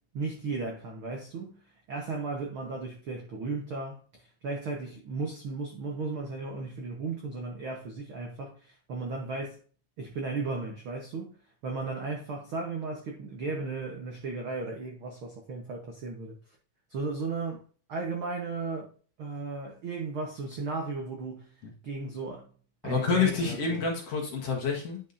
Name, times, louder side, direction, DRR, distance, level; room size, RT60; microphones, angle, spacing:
voice 1, 0.1-1.6 1.9-4.0 4.4-9.6 10.0-11.3 11.6-16.4 16.9-17.6 17.9-18.9 19.2-21.5 21.8-22.5 22.8-23.9, right 3 dB, 65° right, 1.3 m, -35 dB
voice 2, 22.8-25.0, left 5 dB, 55° left, 2.1 m, -28 dB
10.0 x 5.4 x 2.6 m
omnidirectional pair, 4.0 m